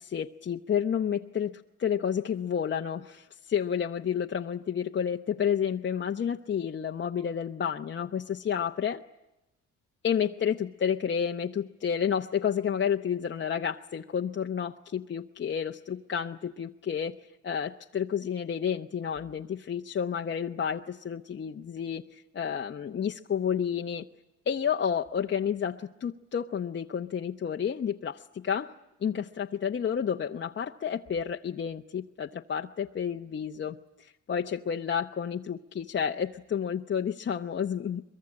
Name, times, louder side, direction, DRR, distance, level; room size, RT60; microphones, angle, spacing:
voice 1, 0.0-9.0 10.0-17.2 17.4-24.1 24.5-28.7 29.0-38.0, left 8 dB, 40° left, 3 dB, 0.9 m, -30 dB
23.0 x 23.0 x 9.7 m, 0.94 s
cardioid pair, 90°, 30 cm